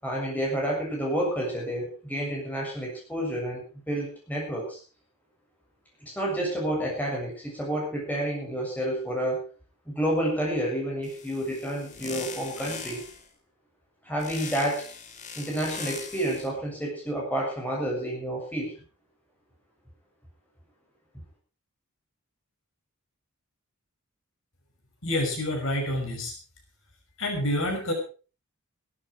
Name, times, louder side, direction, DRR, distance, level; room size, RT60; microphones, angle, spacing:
voice 1, 0.0-4.8 6.0-9.4 9.9-13.0 14.0-14.9 15.4-18.7, right 1 dB, 5° left, -2 dB, 7.2 m, -29 dB
sound 1, 11.0-13.3 14.2-16.5, left 5 dB, 35° left, 2.6 m, -40 dB
voice 2, 25.0-26.3 27.2-27.9, left 1 dB, 60° left, 2 dB, 5.7 m, -28 dB
17.0 x 12.5 x 4.8 m, 0.36 s
head